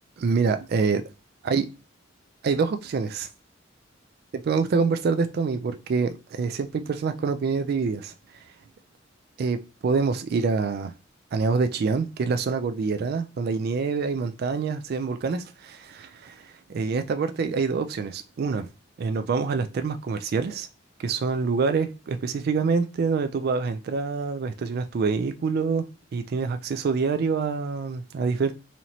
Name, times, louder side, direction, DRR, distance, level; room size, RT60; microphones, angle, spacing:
voice 1, 0.2-1.0 1.4-1.7 2.4-3.3 4.5-8.4 9.4-10.9 11.3-18.7 19.0-20.7 21.0-25.9 26.1-28.5, right 4 dB, 55° right, 0.3 m, -26 dB
4.2 x 3.0 x 2.7 m
head